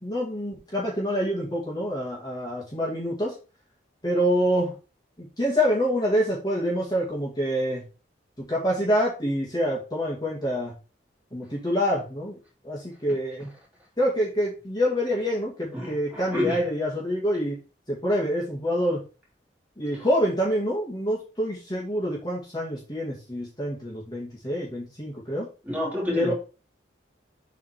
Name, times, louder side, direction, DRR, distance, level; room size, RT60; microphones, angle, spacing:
voice 1, 0.0-3.4 4.0-4.7 5.2-7.8 8.5-10.7 11.3-12.4 12.6-13.5 14.0-17.5 17.9-19.0 19.8-25.5 26.2-26.3, equal, 20° left, 2.2 m, -26 dB
voice 2, 15.7-16.6 25.7-26.3, left 1 dB, 10° right, 3.0 m, -29 dB
7.5 x 4.2 x 4.5 m
head